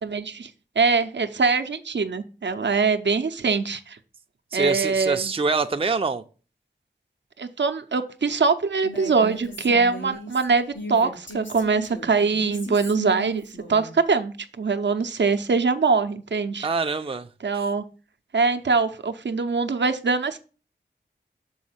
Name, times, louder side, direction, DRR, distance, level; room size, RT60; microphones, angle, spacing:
voice 1, 0.0-0.5 0.8-4.0 4.5-5.3 7.4-16.7 17.4-17.8 18.3-20.4, right 4 dB, 70° right, 0.6 m, -23 dB
voice 2, 4.5-6.2 16.6-17.3, right 4 dB, 30° right, 0.5 m, -25 dB
Female speech woman speaking, 8.8-13.9, right 2 dB, 80° left, 3.6 m, -37 dB
6.3 x 4.3 x 5.6 m
wide cardioid pair, 50°, 19 cm